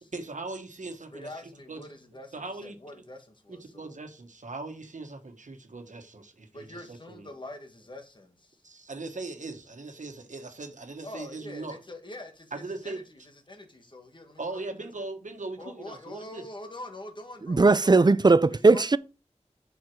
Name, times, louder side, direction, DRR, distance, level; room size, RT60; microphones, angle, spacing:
voice 1, 0.1-1.3 1.7-1.8 2.3-2.8 3.5-7.3 8.6-11.8 12.5-13.0 14.4-16.4, right 3 dB, 90° right, 1.3 m, -39 dB
voice 2, 1.1-3.9 6.5-8.6 11.0-14.6 15.6-18.1 18.5-18.9, left 1 dB, 40° left, 1.6 m, -44 dB
voice 3, 17.5-19.0, right 3 dB, 35° right, 0.4 m, -18 dB
7.7 x 5.6 x 4.7 m
wide cardioid pair, 55°, 12 cm